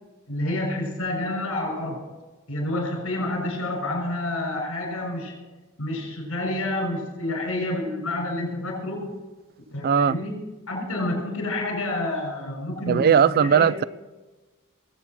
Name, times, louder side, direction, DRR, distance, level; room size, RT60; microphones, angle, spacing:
voice 1, 0.3-2.0 2.5-5.4 5.8-9.2 9.7-13.7, left 1 dB, 75° left, 6.1 m, -29 dB
voice 2, 9.8-10.2 12.9-13.8, right 7 dB, 45° right, 0.3 m, -18 dB
20.5 x 8.5 x 6.1 m
head